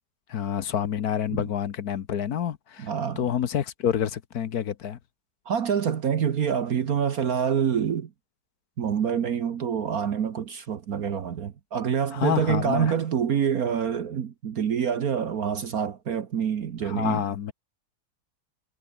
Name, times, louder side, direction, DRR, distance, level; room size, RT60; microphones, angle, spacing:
voice 1, 0.3-2.9 3.2-5.0 12.1-12.9 16.8-17.5, left 9 dB, 60° left, 1.4 m, -28 dB
voice 2, 2.8-3.2 5.5-8.1 8.8-17.2, right 8 dB, 55° right, 1.5 m, -26 dB
omnidirectional pair, 1.9 m